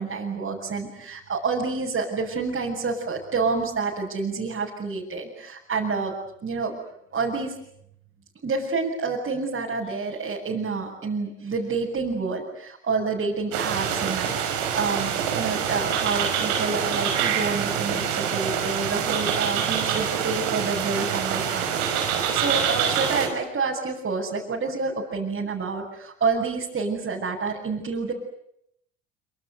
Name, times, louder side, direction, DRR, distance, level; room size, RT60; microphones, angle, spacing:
voice 1, 0.0-6.1 6.4-6.7 7.1-7.5 8.4-21.8 22.1-28.1, right 4 dB, 40° right, -3 dB, 7.4 m, -28 dB
sound 1, 13.5-23.3, right 8 dB, 85° right, 5.4 m, -26 dB
26.5 x 25.5 x 8.3 m, 0.73 s
hypercardioid pair, 65°, 31 cm